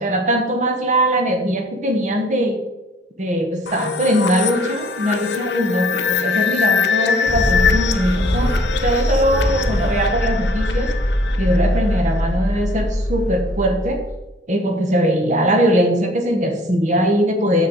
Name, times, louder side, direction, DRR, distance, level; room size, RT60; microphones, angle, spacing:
voice 1, 0.0-2.6 3.2-10.9 11.4-14.0 14.5-17.7, equal, 45° right, 4 dB, 1.2 m, -20 dB
sound 1, 3.7-12.3, left 6 dB, 70° left, 0.7 m, -23 dB
sound 2, 7.3-14.1, equal, 25° left, 1.0 m, -22 dB
6.7 x 6.2 x 4.0 m, 1.1 s
head